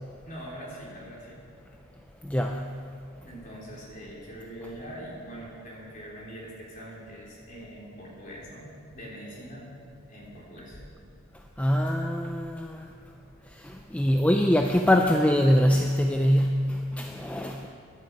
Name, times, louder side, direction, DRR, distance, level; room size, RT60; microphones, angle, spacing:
voice 1, 0.2-1.4 3.2-9.7 10.1-10.8, equal, 35° left, -4 dB, 3.4 m, -43 dB
voice 2, 2.2-2.8 11.6-12.9 13.5-17.7, equal, 5° left, 3 dB, 0.4 m, -24 dB
15.5 x 11.0 x 4.6 m, 2.4 s
head